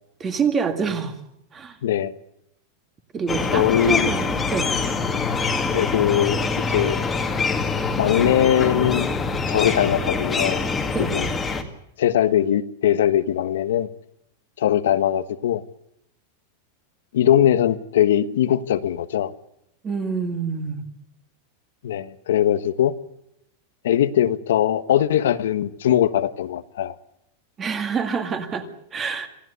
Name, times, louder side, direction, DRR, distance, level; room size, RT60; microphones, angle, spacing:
voice 1, 0.2-1.2 1.5-1.8 3.1-4.7 10.9-11.1 19.8-20.9 27.6-29.3, right 5 dB, 15° right, 8 dB, 2.0 m, -26 dB
voice 2, 1.8-2.1 3.5-4.1 5.7-7.0 8.0-9.1 9.5-10.7 11.1-11.3 12.0-13.9 14.6-15.6 17.1-19.3 21.8-22.9 23.8-27.0, left 11 dB, 85° left, 11 dB, 1.4 m, -21 dB
sound 1, 3.3-11.6, left 4 dB, 10° left, 2.0 m, -24 dB
27.0 x 17.0 x 8.2 m, 0.78 s
supercardioid pair, 175°, 0 cm